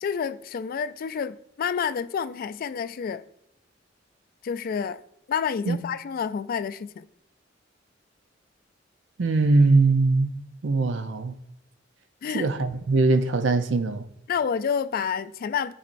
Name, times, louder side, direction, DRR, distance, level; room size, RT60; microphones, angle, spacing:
voice 1, 0.0-3.2 4.4-5.0 5.3-7.1 12.2-12.5 14.3-15.7, left 7 dB, 50° left, 0.3 m, -29 dB
voice 2, 9.2-10.3 10.6-11.3 12.3-14.0, right 3 dB, 70° right, 0.6 m, -21 dB
12.0 x 4.2 x 2.6 m
head